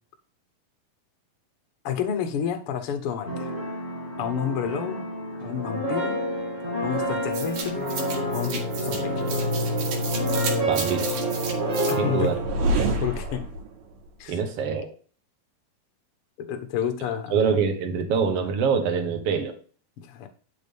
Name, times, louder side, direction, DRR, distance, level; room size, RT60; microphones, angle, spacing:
voice 1, 1.8-3.5 4.2-5.1 5.3-6.2 6.8-7.8 8.3-9.2 11.9-12.4 13.0-13.5 14.2-14.4 16.4-17.4 20.0-20.3, left 8 dB, 75° left, 7 dB, 1.3 m, -30 dB
sound 1, 3.2-12.3, equal, 15° right, 2.0 m, -30 dB
sound 2, 7.3-13.7, right 2 dB, 75° right, 3.8 m, -28 dB
voice 2, 10.7-11.1 12.0-12.4 14.3-14.9 17.3-19.5, right 6 dB, 60° right, 5 dB, 1.7 m, -25 dB
11.5 x 6.1 x 3.5 m, 0.40 s
omnidirectional pair, 4.4 m